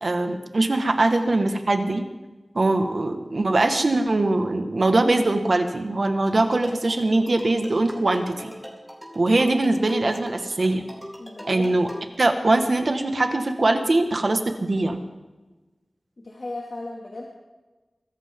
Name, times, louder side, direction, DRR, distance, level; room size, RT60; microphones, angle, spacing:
voice 1, 0.0-2.0 2.6-8.5 9.2-10.8 11.5-11.9 12.2-15.0, right 2 dB, 60° right, 6 dB, 1.8 m, -22 dB
sound 1, 6.3-12.1, equal, ahead, 3.7 m, -42 dB
voice 2, 11.2-11.7 16.2-17.3, left 2 dB, 60° left, -3 dB, 2.5 m, -36 dB
24.0 x 14.0 x 3.9 m, 1.2 s
wide cardioid pair, 65°, 0 cm